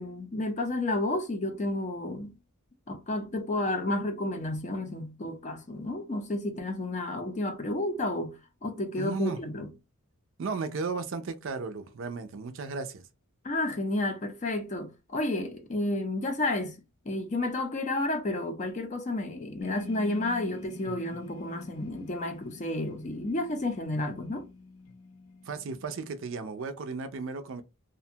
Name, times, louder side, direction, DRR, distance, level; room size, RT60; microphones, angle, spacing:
voice 1, 0.0-2.3 2.9-9.7 13.4-16.8 17.1-24.4, left 2 dB, 30° left, 0.5 m, -31 dB
voice 2, 9.0-9.4 10.4-13.1 25.5-27.6, right 4 dB, 60° right, 0.4 m, -35 dB
sound 1, 19.6-26.3, left 4 dB, 80° left, 0.5 m, -46 dB
2.5 x 2.2 x 2.7 m
head